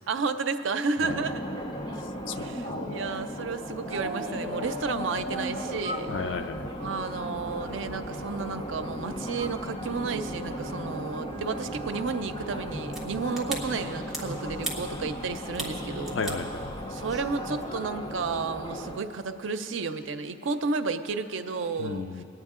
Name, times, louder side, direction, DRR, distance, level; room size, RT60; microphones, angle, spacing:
voice 1, 0.1-1.5 2.3-6.1 6.8-16.2 16.9-22.2, right 4 dB, 85° right, 9 dB, 0.6 m, -32 dB
sound 1, 1.0-19.0, equal, 25° left, 0.7 m, -36 dB
voice 2, 2.3-3.0 6.1-6.7 16.1-16.7 21.8-22.2, left 4 dB, 75° left, 8 dB, 0.5 m, -34 dB
sound 2, 3.9-5.5 5.8-8.9 9.3-13.4, left 1 dB, 35° right, 0.6 m, -42 dB
sound 3, 12.6-17.6, right 2 dB, 5° right, 1.4 m, -40 dB
22.0 x 9.3 x 3.7 m, 2.9 s
head